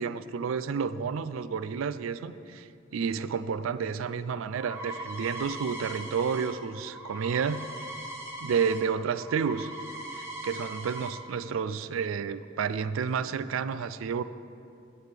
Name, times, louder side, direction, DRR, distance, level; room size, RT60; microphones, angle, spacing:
voice 1, 0.0-2.6 2.9-7.6 8.4-9.7 10.1-14.2, right 6 dB, 85° right, 14 dB, 0.4 m, -30 dB
sound 1, 4.5-8.8 9.1-11.1, right 1 dB, 15° right, 1.0 m, -40 dB
16.0 x 7.6 x 3.4 m, 2.6 s
head